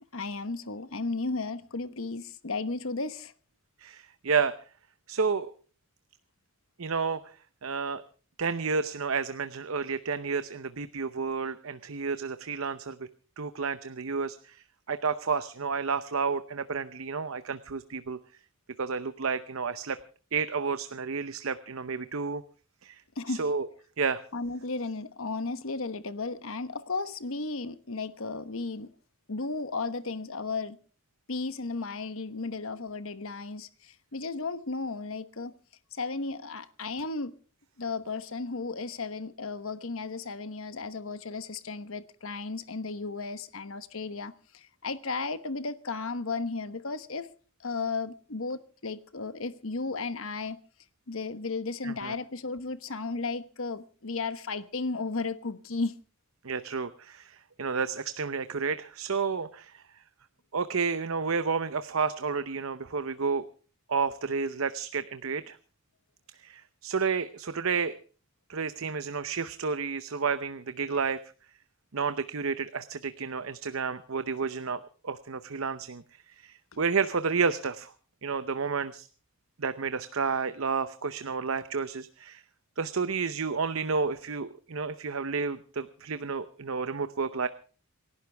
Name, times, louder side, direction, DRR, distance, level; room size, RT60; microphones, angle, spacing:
voice 1, 0.1-3.3 23.2-23.5 24.3-28.9 29.3-30.8 31.3-35.5 35.9-37.3 37.8-47.3 47.6-50.6 51.1-55.9, left 3 dB, 65° left, 1.2 m, -34 dB
voice 2, 3.8-4.5 5.1-5.5 6.8-7.3 7.6-8.0 8.4-13.1 13.4-18.2 18.8-20.0 20.3-22.4 22.8-23.0 23.3-23.7 24.0-24.2 51.8-52.1 56.4-59.8 60.5-63.4 63.9-65.6 66.4-68.0 68.5-71.2 71.9-77.9 78.2-79.1 79.6-82.4 82.8-87.5, right 5 dB, 70° right, 0.8 m, -31 dB
28.0 x 12.0 x 3.5 m
head